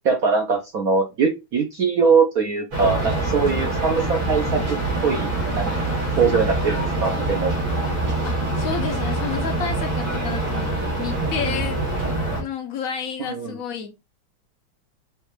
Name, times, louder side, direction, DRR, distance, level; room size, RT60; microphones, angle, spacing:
voice 1, 0.0-4.8 5.0-5.7 6.2-7.7 13.3-13.6, right 5 dB, 60° right, 1.0 m, -22 dB
sound 1, 2.7-12.4, right 2 dB, 80° right, 3.2 m, -25 dB
voice 2, 8.2-11.8 12.4-14.1, left 6 dB, 60° left, 1.0 m, -31 dB
6.3 x 2.5 x 3.1 m
omnidirectional pair, 2.1 m